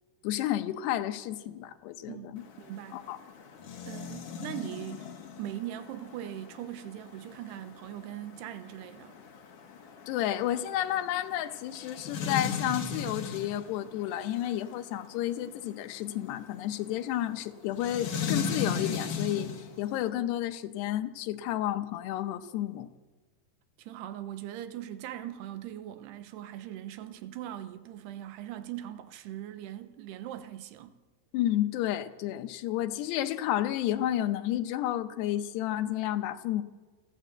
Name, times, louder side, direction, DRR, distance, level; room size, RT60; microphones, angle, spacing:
voice 1, 0.2-2.4 2.9-3.2 10.1-19.5 19.8-22.9 31.3-36.6, left 12 dB, 80° left, 3.0 m, -31 dB
voice 2, 2.1-3.0 3.8-5.1 5.4-9.2 23.8-31.0, right 12 dB, 80° right, 3.0 m, -40 dB
sound 1, 2.4-20.1, left 6 dB, 55° left, 3.2 m, -39 dB
28.5 x 12.0 x 8.0 m
omnidirectional pair, 4.8 m